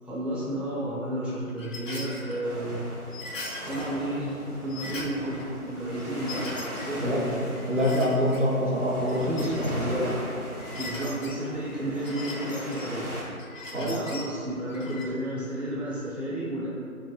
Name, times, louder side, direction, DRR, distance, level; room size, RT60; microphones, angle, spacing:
voice 1, 0.0-2.8 3.6-6.5 6.9-7.4 9.8-10.0 10.8-13.2 13.7-16.7, right 1 dB, 5° right, -8 dB, 0.3 m, -32 dB
sound 1, 1.5-2.4 3.1-3.9 4.3-4.4 4.7-5.5 5.9-7.0 7.3-8.4 8.9-10.0 10.6-11.4 11.9-12.9 13.3-14.3 14.7-15.0, left 2 dB, 60° left, 0.5 m, -40 dB
sound 2, 2.4-13.2, right 1 dB, 80° right, 0.8 m, -38 dB
voice 2, 7.7-10.2 13.7-14.0, equal, 55° right, -5 dB, 0.5 m, -25 dB
2.3 x 2.1 x 3.0 m, 2.3 s
figure-of-eight pair, 170°, 43 cm